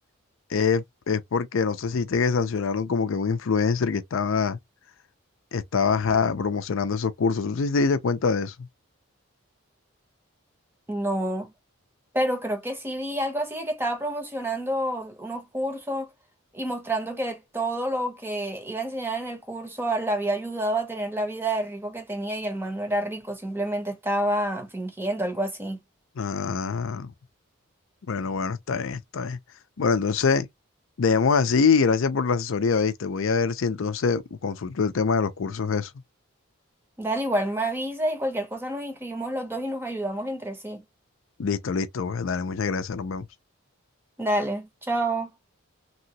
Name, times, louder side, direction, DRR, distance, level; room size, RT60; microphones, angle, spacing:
voice 1, 0.5-4.6 5.5-8.5 26.2-27.1 28.1-29.4 29.8-30.5 31.0-35.9 41.4-43.3, left 5 dB, 65° left, 0.5 m, -24 dB
voice 2, 10.9-11.5 12.1-16.1 16.5-25.8 37.0-40.8 44.2-45.3, right 1 dB, 10° right, 0.7 m, -28 dB
3.0 x 2.8 x 2.8 m
head